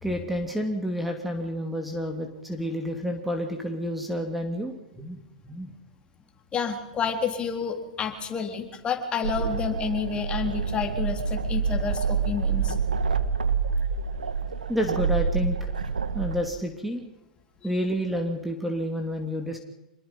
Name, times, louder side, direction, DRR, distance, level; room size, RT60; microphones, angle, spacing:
voice 1, 0.0-5.7 14.7-15.6 16.1-17.0 17.6-19.6, equal, 5° right, 3 dB, 3.1 m, -29 dB
voice 2, 6.5-12.8, left 5 dB, 25° left, 5 dB, 3.7 m, -29 dB
sound 1, 9.2-16.5, right 5 dB, 85° right, 1.4 m, -27 dB
26.5 x 21.5 x 5.6 m, 0.96 s
hypercardioid pair, 105°, 4 cm